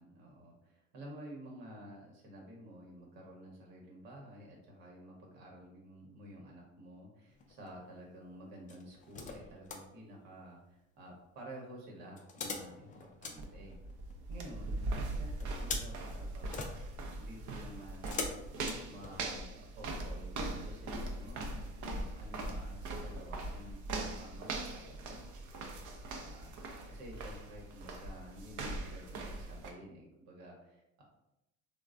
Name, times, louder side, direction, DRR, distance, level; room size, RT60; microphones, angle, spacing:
voice 1, 0.0-13.8 14.3-16.7 17.2-18.3 18.9-25.3 26.1-31.0, equal, 60° right, -1 dB, 1.0 m, -51 dB
sound 1, 7.3-7.8 8.7-9.9 12.2-14.4 15.4-19.5 20.0-20.1, left 4 dB, 20° left, 0.3 m, -44 dB
sound 2, 13.4-29.7, right 2 dB, 45° right, 0.6 m, -41 dB
3.1 x 2.2 x 2.4 m, 0.89 s
hypercardioid pair, 70°, 40 cm